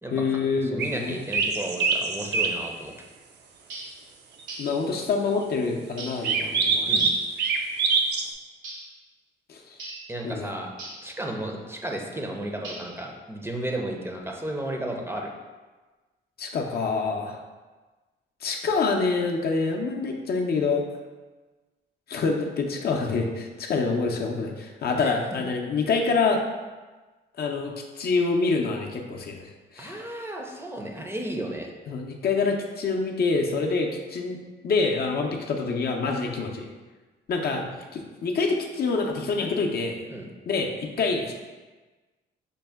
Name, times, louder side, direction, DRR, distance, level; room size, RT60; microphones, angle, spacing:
voice 1, 0.1-1.2 4.6-7.0 9.5-9.6 10.2-10.5 16.4-17.4 18.4-20.8 22.1-26.4 27.4-29.4 29.7-30.0 31.9-34.4 34.6-36.7 37.3-40.0 40.5-41.3, left 4 dB, 50° left, 1 dB, 0.5 m, -26 dB
voice 2, 0.6-2.9 6.8-7.1 10.1-10.7 11.0-15.3 25.0-25.1 29.8-31.7 40.1-40.3, right 1 dB, 10° right, 0 dB, 0.5 m, -33 dB
sound 1, 0.8-1.0 1.3-2.6 6.2-8.3, right 4 dB, 60° right, 0.5 m, -24 dB
sound 2, 3.7-4.0 4.5-4.8 6.0-6.3 7.0-7.2 8.6-8.9 9.8-10.1 10.8-11.1 12.6-13.1, right 2 dB, 85° right, 1.1 m, -40 dB
5.3 x 2.1 x 3.4 m, 1.3 s
cardioid pair, 90°, 20 cm